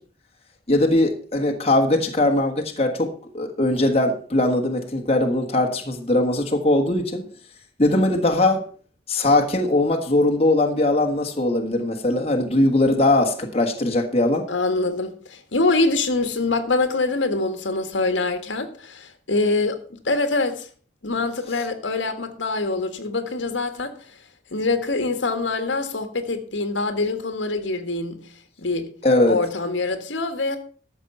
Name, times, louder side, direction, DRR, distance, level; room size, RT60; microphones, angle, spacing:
voice 1, 0.7-7.2 7.8-8.6 9.1-14.5 21.5-21.6 29.0-29.4, left 2 dB, 35° left, 1.5 m, -20 dB
voice 2, 14.5-20.7 21.0-23.9 24.5-28.2 28.6-28.9 29.3-30.6, left 3 dB, 85° left, 1.6 m, -24 dB
13.0 x 7.1 x 5.6 m
head